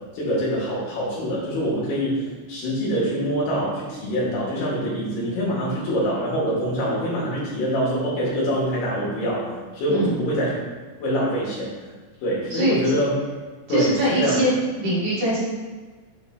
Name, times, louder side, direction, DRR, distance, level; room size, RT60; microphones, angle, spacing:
voice 1, 0.1-10.5 11.0-11.7 12.2-13.2 13.7-14.4, equal, 65° left, -6 dB, 3.8 m, -24 dB
voice 2, 9.9-10.3 12.5-12.8 13.7-14.5 14.8-15.4, right 1 dB, 55° right, -8 dB, 2.7 m, -22 dB
7.5 x 6.5 x 3.1 m, 1.3 s
omnidirectional pair, 5.5 m